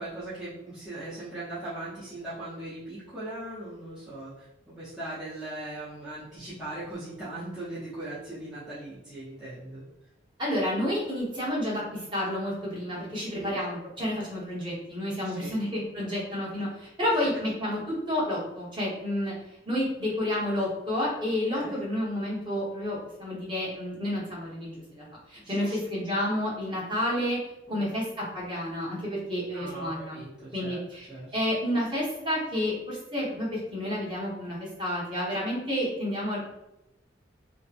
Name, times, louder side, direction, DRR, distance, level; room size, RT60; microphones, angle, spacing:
voice 1, 0.0-4.5 4.7-9.8 13.3-13.5 15.3-15.5 21.5-21.8 25.4-26.0 27.7-27.8 29.5-30.8 31.1-31.3, right 1 dB, 5° right, -13 dB, 0.6 m, -39 dB
voice 2, 10.4-19.3 19.7-27.4 27.7-30.2 30.5-31.1 31.3-36.5, left 1 dB, 25° right, -8 dB, 0.9 m, -30 dB
2.6 x 2.1 x 2.5 m, 0.90 s
head